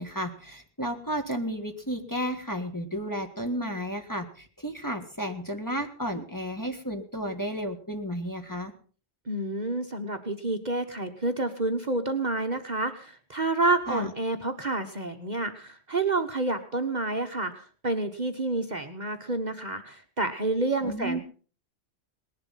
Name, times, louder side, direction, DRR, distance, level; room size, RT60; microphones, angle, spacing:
voice 1, 0.0-8.7 13.9-14.1 20.8-21.2, equal, 15° left, 5 dB, 1.7 m, -32 dB
voice 2, 9.3-21.2, right 2 dB, 35° right, 6 dB, 1.2 m, -29 dB
19.5 x 11.0 x 5.7 m, 0.41 s
omnidirectional pair, 1.3 m